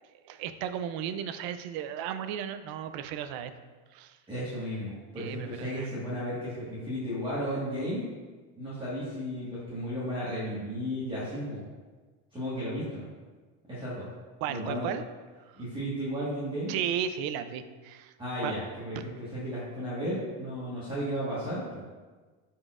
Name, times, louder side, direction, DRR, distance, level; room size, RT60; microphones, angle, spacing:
voice 1, 0.2-3.5 3.9-4.2 5.2-5.9 14.4-15.0 16.7-18.1 18.4-18.5, right 9 dB, 55° right, 11 dB, 0.5 m, -34 dB
voice 2, 4.3-8.0 8.6-11.6 12.3-13.1 13.7-14.1 14.5-14.9 15.6-16.7 18.2-21.8, equal, 10° right, -10 dB, 1.5 m, -34 dB
10.0 x 4.3 x 2.4 m, 1.3 s
cardioid pair, 140°, 45 cm